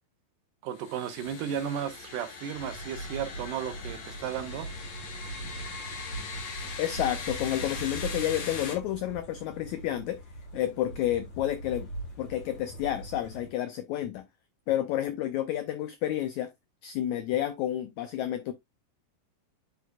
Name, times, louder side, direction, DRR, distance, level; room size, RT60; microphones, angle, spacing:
voice 1, 0.6-4.7, right 9 dB, 75° right, 2.3 m, -34 dB
sound 1, 0.7-8.7, left 5 dB, 55° left, 2.3 m, -40 dB
sound 2, 2.5-13.5, right 2 dB, 40° left, 3.3 m, -41 dB
voice 2, 6.8-10.2 10.5-11.9 12.2-14.3 14.7-16.5 16.8-18.5, left 12 dB, 85° left, 1.6 m, -30 dB
9.5 x 4.7 x 2.4 m
omnidirectional pair, 4.1 m